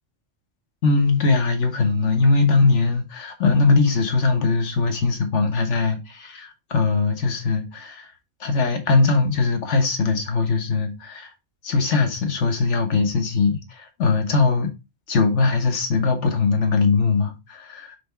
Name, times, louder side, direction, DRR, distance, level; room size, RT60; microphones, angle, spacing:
voice 1, 0.8-8.1 8.4-11.3 11.6-14.7 15.1-18.0, left 4 dB, 75° left, 1.6 m, -21 dB
6.2 x 3.5 x 4.4 m
omnidirectional pair, 1.3 m